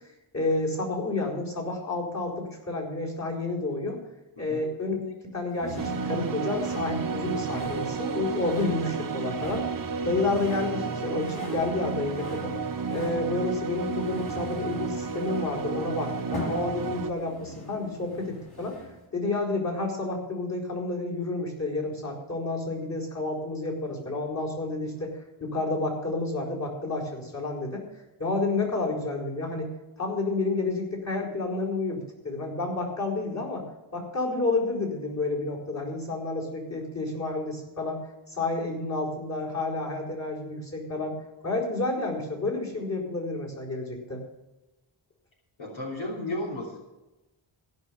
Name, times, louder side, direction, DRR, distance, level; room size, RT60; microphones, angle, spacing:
voice 1, 0.3-4.0 4.4-9.6 10.0-12.5 12.9-27.8 28.2-29.7 30.0-33.6 33.9-41.1 41.4-44.2, left 2 dB, 35° left, -3 dB, 4.5 m, -30 dB
sound 1, 5.6-19.1, left 1 dB, 50° left, 5.4 m, -44 dB
sound 2, 5.8-17.1, right 5 dB, 40° right, 0.9 m, -32 dB
voice 2, 45.6-46.8, left 1 dB, 65° left, -3 dB, 3.2 m, -33 dB
15.5 x 6.4 x 7.1 m, 1.0 s
wide cardioid pair, 100°, 50 cm